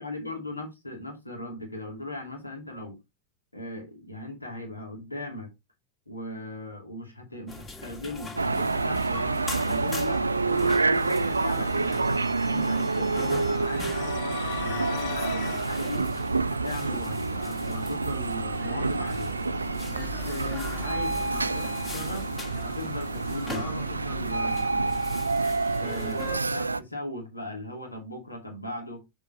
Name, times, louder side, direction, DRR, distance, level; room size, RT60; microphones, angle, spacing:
voice 1, 0.0-3.0 3.5-5.5 6.1-12.1 12.5-16.1 16.5-19.4 19.9-22.3 22.6-24.7 25.8-29.0, left 1 dB, 85° left, 2.7 m, -38 dB
sound 1, 7.5-26.4, left 2 dB, 20° left, 2.1 m, -41 dB
sound 2, 8.4-26.8, right 3 dB, 80° right, 0.4 m, -28 dB
sound 3, 13.5-15.7, left 16 dB, 45° left, 0.4 m, -38 dB
7.0 x 4.5 x 4.0 m
figure-of-eight pair, 90°, 0 cm